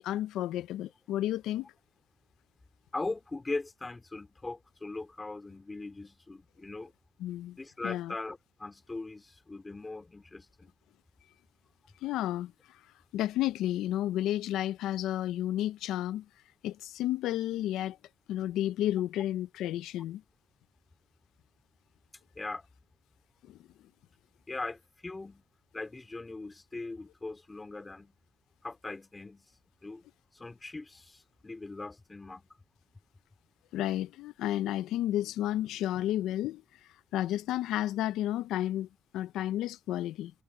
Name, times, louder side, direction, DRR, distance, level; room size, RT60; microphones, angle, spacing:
voice 1, 0.0-1.7 7.2-7.6 7.8-8.1 12.0-12.9 13.1-16.3 16.6-18.0 18.3-20.2 23.4-23.6 33.7-38.9 39.1-40.3, left 13 dB, 90° left, 0.4 m, -32 dB
voice 2, 2.9-6.9 7.6-10.7 22.3-22.7 24.5-25.4 25.7-28.1 28.6-29.5 29.8-30.1 30.3-32.5, left 3 dB, 20° left, 2.9 m, -40 dB
cardioid pair, 90°, 0 cm